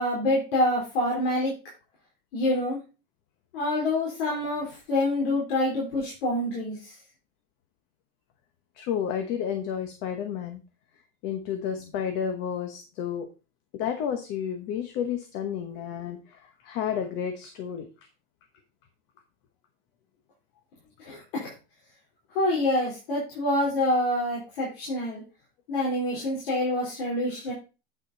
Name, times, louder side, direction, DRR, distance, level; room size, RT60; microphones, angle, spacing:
voice 1, 0.0-1.5 2.3-2.8 3.5-6.9 21.0-21.5 22.3-25.2 25.7-27.5, left 1 dB, 85° left, -4 dB, 4.1 m, -26 dB
voice 2, 8.8-10.6 11.2-13.3 13.7-17.9 26.8-26.9, left 8 dB, 40° left, 7 dB, 1.0 m, -31 dB
8.7 x 6.0 x 4.0 m, 0.31 s
supercardioid pair, 165°, 29 cm